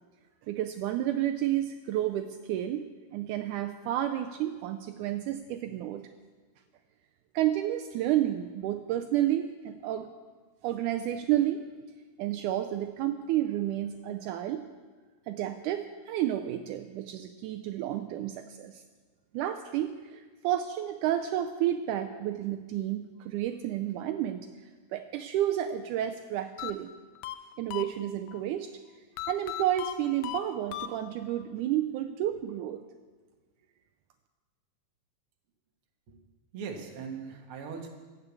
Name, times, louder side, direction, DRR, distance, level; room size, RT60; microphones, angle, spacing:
voice 1, 0.5-6.0 7.3-10.1 10.6-11.6 12.2-14.7 15.3-18.8 19.3-24.5 24.9-26.9 27.6-28.7 29.3-32.8, right 12 dB, 80° right, 6 dB, 2.0 m, -31 dB
sound 1, 26.6-28.4 29.2-31.4, left 14 dB, 90° left, 1.6 m, -39 dB
voice 2, 36.5-37.9, right 6 dB, 50° right, 2 dB, 1.9 m, -40 dB
15.0 x 7.0 x 8.3 m, 1.4 s
omnidirectional pair, 3.8 m